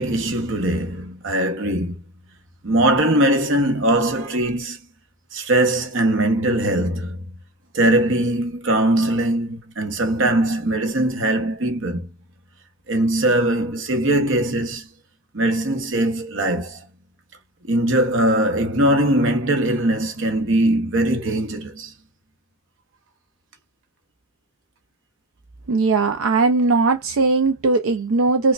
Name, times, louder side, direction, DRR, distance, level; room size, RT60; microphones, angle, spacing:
voice 1, 0.0-2.0 2.6-4.8 5.3-7.3 7.7-12.1 12.9-14.9 15.3-16.8 17.6-21.9, right 1 dB, 60° right, 0.9 m, -21 dB
voice 2, 25.7-28.5, right 3 dB, 85° right, 0.5 m, -19 dB
4.6 x 2.3 x 2.3 m
head